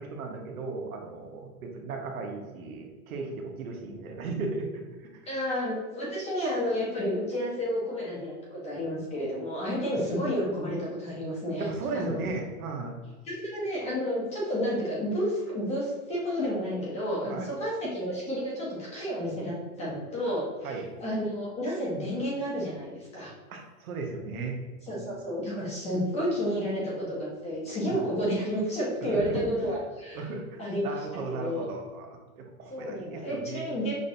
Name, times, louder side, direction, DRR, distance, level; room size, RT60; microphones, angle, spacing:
voice 1, 0.0-4.8 5.1-5.2 11.6-13.0 17.3-17.5 20.6-20.9 23.5-24.6 24.9-25.2 29.0-29.7 30.1-32.1 32.4-33.7, right 3 dB, 70° right, 2 dB, 1.0 m, -36 dB
voice 2, 5.3-12.2 13.2-23.3 24.9-30.2 30.6-31.7 32.7-33.9, equal, 15° left, -5 dB, 1.0 m, -31 dB
6.2 x 2.5 x 2.6 m, 1.3 s
hypercardioid pair, 150°, 44 cm